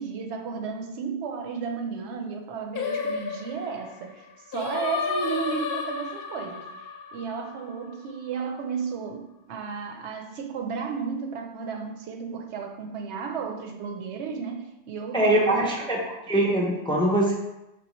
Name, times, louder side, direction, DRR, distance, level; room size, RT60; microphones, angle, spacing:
voice 1, 0.0-6.6 7.1-15.8, right 5 dB, 85° right, 4 dB, 0.9 m, -33 dB
Singing, 2.7-8.0, left 5 dB, 65° left, 0.8 m, -32 dB
voice 2, 15.1-16.0 16.3-17.3, right 1 dB, 5° left, -2 dB, 0.4 m, -22 dB
4.5 x 3.6 x 3.0 m, 0.94 s
omnidirectional pair, 1.1 m